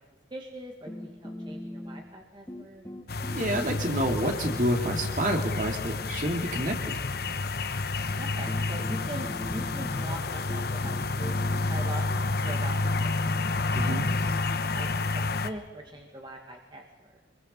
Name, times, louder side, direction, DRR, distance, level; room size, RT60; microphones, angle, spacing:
voice 1, 0.3-2.9 8.2-11.3 11.7-14.9 15.1-17.2, right 1 dB, 25° right, 1 dB, 2.0 m, -42 dB
sound 1, 0.9-2.2 2.5-4.1 4.5-6.9 7.9-8.0 8.5-16.0, left 1 dB, 15° left, 2.4 m, -43 dB
sound 2, 3.1-15.5, left 3 dB, 55° left, 1.0 m, -30 dB
voice 2, 3.3-7.1 13.7-14.1, equal, 45° right, 2 dB, 2.9 m, -28 dB
25.5 x 22.5 x 5.6 m, 1.3 s
head